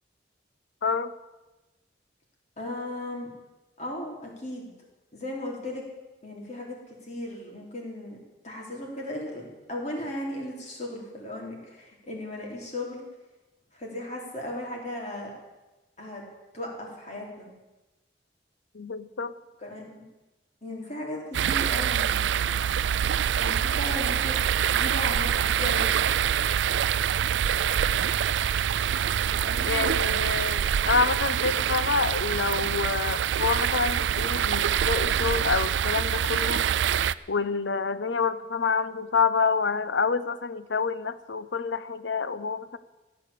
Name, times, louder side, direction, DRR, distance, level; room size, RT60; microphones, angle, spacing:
voice 1, 0.8-1.1 18.7-19.3 29.7-36.7 37.3-42.8, left 5 dB, 85° left, 14 dB, 0.8 m, -27 dB
voice 2, 2.6-3.3 3.8-4.7 5.1-5.8 6.2-8.2 8.4-13.0 13.7-15.3 16.0-16.2 16.5-17.5 19.6-20.0 20.6-22.3 23.4-24.4 24.7-26.0 29.4-30.3, left 1 dB, 40° left, -1 dB, 4.1 m, -36 dB
sound 1, 21.3-37.1, right 9 dB, 85° right, 0.4 m, -25 dB
15.0 x 8.9 x 8.4 m, 1.1 s
head